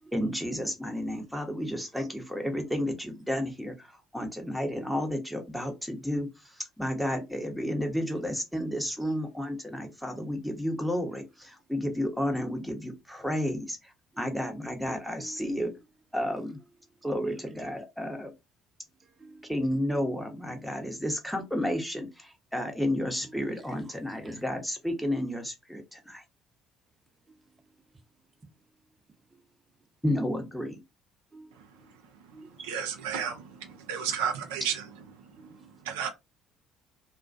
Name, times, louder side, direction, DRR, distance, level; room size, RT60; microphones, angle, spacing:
voice 1, 0.1-15.7 16.1-16.6 17.0-18.3 19.5-26.2 30.0-30.8, equal, ahead, 0.8 m, -32 dB
voice 2, 15.2-15.5 16.3-16.4 19.0-19.5 23.9-24.4 31.3-31.5 32.3-32.8 35.4-35.7, right 3 dB, 30° right, 0.7 m, -51 dB
voice 3, 32.6-34.8 35.8-36.1, right 7 dB, 80° right, 0.4 m, -32 dB
2.3 x 2.2 x 2.5 m
hypercardioid pair, 55°, 0 cm